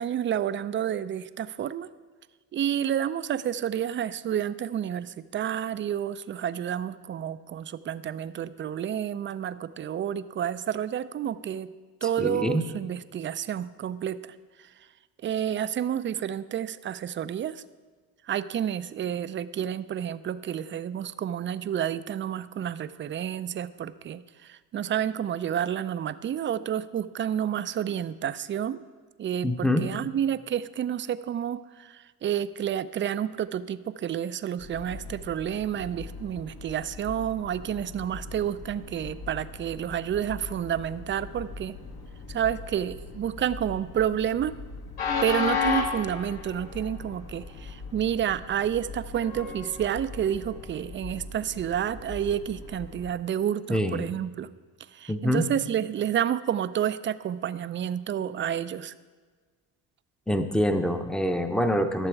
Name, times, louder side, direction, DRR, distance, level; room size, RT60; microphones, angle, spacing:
voice 1, 0.0-1.9 2.5-11.7 12.0-14.7 15.2-17.6 18.3-28.8 29.2-41.8 42.3-44.5 45.2-54.5 54.9-58.9, right 9 dB, 30° right, 14 dB, 0.4 m, -30 dB
voice 2, 12.2-12.6 29.4-29.9 53.7-54.0 55.1-55.4 60.3-62.1, equal, ahead, 7 dB, 0.7 m, -25 dB
Train, 34.6-53.1, left 5 dB, 60° left, 1.4 m, -37 dB
12.5 x 6.7 x 4.6 m, 1.4 s
supercardioid pair, 75°, 40 cm